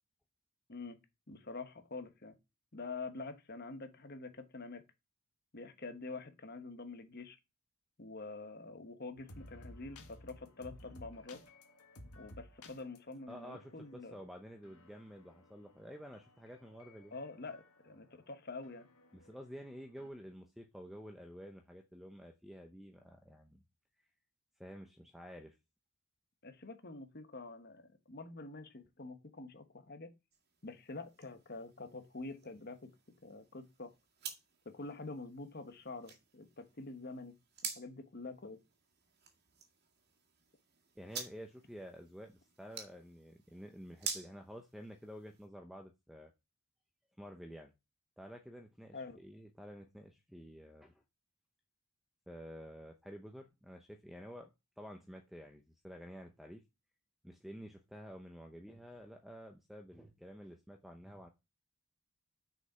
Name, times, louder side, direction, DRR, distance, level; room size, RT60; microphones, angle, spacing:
voice 1, 1.3-2.4 2.7-4.8 5.5-7.4 8.0-11.4 12.1-14.2 17.1-18.9 26.4-30.1 30.6-32.9 33.2-33.9 34.6-37.4 37.8-38.6 48.9-49.2, left 3 dB, 45° left, 1.1 m, -46 dB
sound 1, 9.2-20.1, left 1 dB, 80° left, 1.8 m, -57 dB
voice 2, 13.3-17.1 19.1-23.6 24.6-25.6 41.0-46.3 47.2-47.7 48.2-51.0 52.3-54.5 54.8-56.6 57.2-61.3, equal, ahead, 0.7 m, -50 dB
sound 2, 30.3-45.5, right 6 dB, 45° right, 1.9 m, -50 dB
6.5 x 5.4 x 5.6 m
head